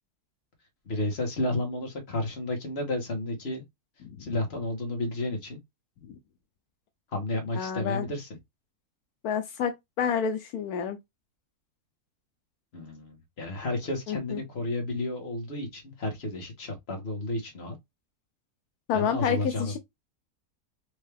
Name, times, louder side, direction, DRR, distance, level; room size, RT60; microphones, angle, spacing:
voice 1, 0.8-3.6 4.2-5.6 7.1-8.3 12.7-17.8 18.9-19.8, left 2 dB, 45° left, 1.5 m, -32 dB
voice 2, 7.6-8.0 9.2-9.7 10.0-11.0 14.1-14.4 18.9-19.8, left 7 dB, 80° left, 1.1 m, -28 dB
4.6 x 2.7 x 3.3 m
omnidirectional pair, 1.6 m